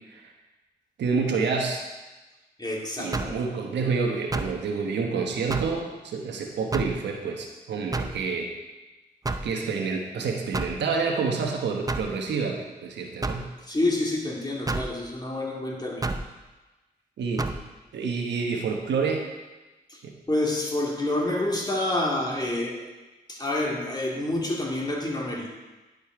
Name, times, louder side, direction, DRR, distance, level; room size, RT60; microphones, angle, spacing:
voice 1, 1.0-1.9 3.0-8.5 9.4-13.5 17.2-17.5 17.9-19.3 20.0-20.1, right 5 dB, 85° right, 2 dB, 1.2 m, -28 dB
voice 2, 2.6-3.3 13.6-16.1 19.9-20.0 20.3-22.8 23.3-25.5, left 1 dB, 25° left, -2 dB, 2.4 m, -28 dB
sound 1, 3.1-3.4 4.3-4.6 5.5-5.8 6.7-7.0 7.9-8.2 9.3-9.5 10.5-10.8 11.9-12.1 13.2-13.5 14.7-14.9 16.0-16.3 17.4-17.6, right 3 dB, 20° right, 0.6 m, -29 dB
10.5 x 5.3 x 4.8 m, 1.1 s
cardioid pair, 60°, 18 cm